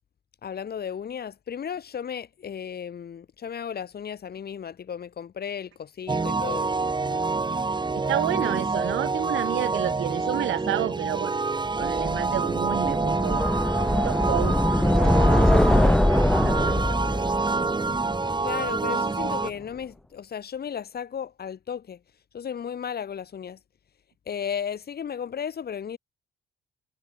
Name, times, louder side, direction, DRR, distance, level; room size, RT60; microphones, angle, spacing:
voice 1, 0.4-6.7 18.4-22.0 22.3-23.6 24.3-26.0, left 8 dB, 50° left, 3.9 m, -34 dB
sound 1, 6.1-19.5, right 3 dB, 20° right, 1.7 m, -27 dB
voice 2, 8.1-11.3 11.8-13.4 13.9-14.9 15.3-16.0 16.3-17.2, right 14 dB, 80° right, 1.3 m, -31 dB
sound 2, 11.8-18.9, left 1 dB, 5° left, 0.3 m, -23 dB
cardioid pair, 90°, 20 cm